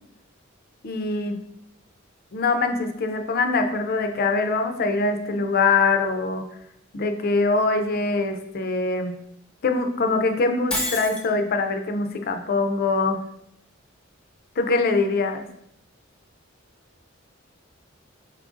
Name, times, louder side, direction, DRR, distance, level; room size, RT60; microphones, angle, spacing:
voice 1, 0.8-1.4 2.3-6.4 6.9-9.1 9.6-13.2 14.6-15.4, left 3 dB, 50° left, 6 dB, 0.4 m, -23 dB
Shatter, 10.7-11.3, left 1 dB, 5° left, 0.6 m, -27 dB
4.3 x 3.7 x 2.5 m, 0.75 s
head